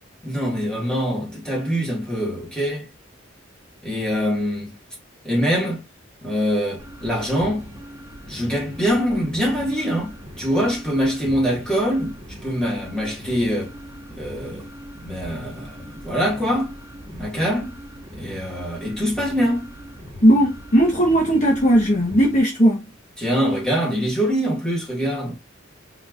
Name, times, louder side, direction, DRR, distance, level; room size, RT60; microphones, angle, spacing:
voice 1, 0.2-2.9 3.8-4.8 5.2-5.8 6.2-7.6 8.3-12.2 12.4-13.7 14.2-14.7 15.0-16.7 17.1-17.8 18.1-19.7 23.2-25.4, equal, 5° left, 2.5 m, -24 dB
sound 1, 6.8-22.4, equal, 20° right, 2.8 m, -40 dB
voice 2, 20.2-22.8, equal, 40° left, 1.3 m, -17 dB
4.3 x 4.0 x 2.5 m
head